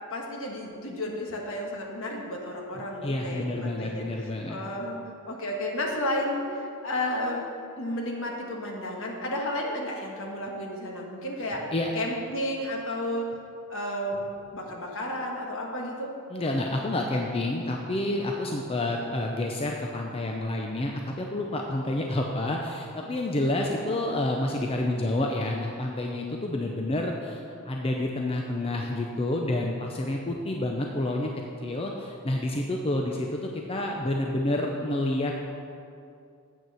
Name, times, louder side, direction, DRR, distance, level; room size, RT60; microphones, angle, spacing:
voice 1, 0.1-5.0 5.3-7.5 7.8-11.6 11.9-13.3 13.7-14.2 14.5-16.1, left 1 dB, 65° left, 0 dB, 1.4 m, -32 dB
voice 2, 3.0-4.6 11.7-11.9 16.3-27.4 27.7-31.3 31.6-35.3, left 1 dB, 25° left, 1 dB, 0.6 m, -29 dB
8.2 x 6.8 x 6.2 m, 2.5 s
head